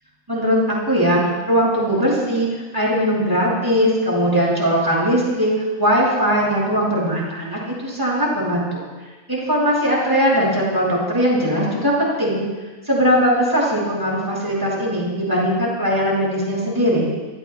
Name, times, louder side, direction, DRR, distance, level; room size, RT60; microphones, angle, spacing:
voice 1, 0.3-2.5 2.7-5.5 5.8-8.8 9.3-12.4 12.9-17.0, equal, 15° right, -5 dB, 7.2 m, -19 dB
28.5 x 21.5 x 2.3 m, 1.3 s
omnidirectional pair, 1.6 m